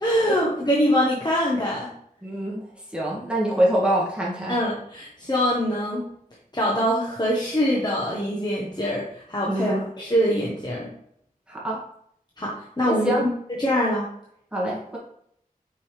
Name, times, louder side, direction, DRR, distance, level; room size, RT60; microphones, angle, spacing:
voice 1, 0.0-1.9 4.5-6.1 6.5-10.9 12.4-13.3 13.6-14.1, equal, 30° left, -4 dB, 1.3 m, -24 dB
voice 2, 2.2-2.7 2.9-4.6 9.5-9.8 11.5-11.8 12.9-13.2 14.5-15.0, right 1 dB, 5° right, -6 dB, 2.1 m, -24 dB
5.4 x 5.2 x 3.3 m, 0.70 s
wide cardioid pair, 55°, 15 cm